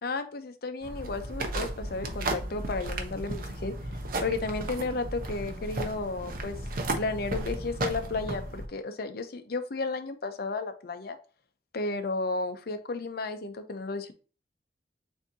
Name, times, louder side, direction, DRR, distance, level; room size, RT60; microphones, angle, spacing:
voice 1, 0.0-3.7 4.2-6.6 6.9-11.2 11.7-14.1, left 3 dB, 60° left, 8 dB, 0.6 m, -33 dB
sound 1, 0.8-8.7, right 2 dB, 55° right, 0.7 m, -34 dB
6.9 x 2.7 x 2.7 m, 0.37 s
head